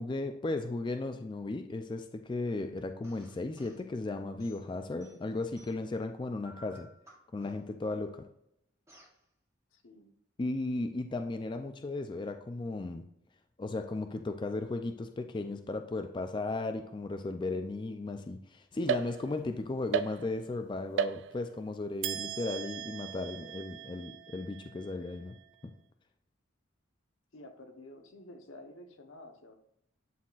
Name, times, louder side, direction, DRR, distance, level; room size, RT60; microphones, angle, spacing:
voice 1, 0.0-6.9 7.3-8.3 10.4-13.0 13.6-25.4 25.6-25.7, left 2 dB, 25° left, 6 dB, 0.3 m, -35 dB
sound 1, 3.0-3.8 4.4-6.0 6.4-7.9 8.9-9.2, left 1 dB, 15° right, 1.0 m, -57 dB
voice 2, 9.7-10.1 27.3-29.5, left 1 dB, 85° left, 4 dB, 1.0 m, -51 dB
sound 2, 18.9-19.5 19.9-20.6 21.0-21.6 22.0-25.5, right 8 dB, 60° right, 0.3 m, -37 dB
11.0 x 4.2 x 2.4 m, 0.76 s
head